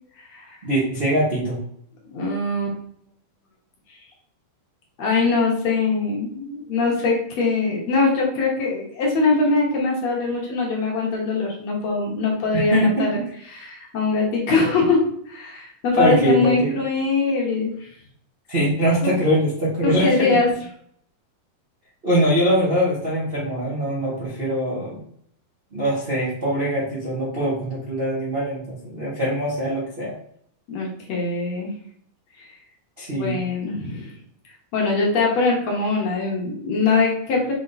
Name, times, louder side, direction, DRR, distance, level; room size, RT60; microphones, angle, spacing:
voice 1, 0.6-1.6 12.5-13.0 16.0-16.8 18.5-20.4 22.0-25.0 25.7-30.1 33.0-33.4, equal, 55° right, -7 dB, 0.6 m, -22 dB
voice 2, 2.1-2.8 3.9-4.0 5.0-13.2 13.5-17.9 19.0-19.1 19.8-20.5 30.7-31.7 32.4-32.5 33.1-34.1 34.7-37.5, left 3 dB, 60° left, -2 dB, 2.2 m, -22 dB
6.4 x 3.7 x 4.0 m, 0.67 s
omnidirectional pair, 3.8 m